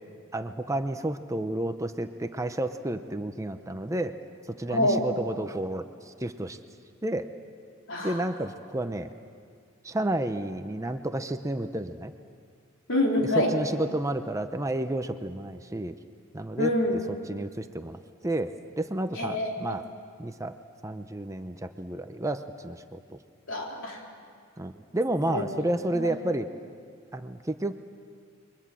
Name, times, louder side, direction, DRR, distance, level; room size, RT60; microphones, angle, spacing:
voice 1, 0.3-4.2 4.6-6.6 7.0-7.3 8.0-9.1 9.8-12.1 13.5-15.9 16.3-16.7 17.1-19.8 20.2-20.6 20.8-23.2 24.6-26.5 27.1-27.7, right 1 dB, 15° right, 8 dB, 0.7 m, -31 dB
voice 2, 4.7-5.0 7.9-8.2 12.9-13.5 16.6-17.0 19.1-19.7 23.5-24.0 25.3-25.4 25.9-26.2, left 1 dB, 65° left, 0 dB, 4.1 m, -26 dB
29.0 x 23.0 x 7.6 m, 2.1 s
head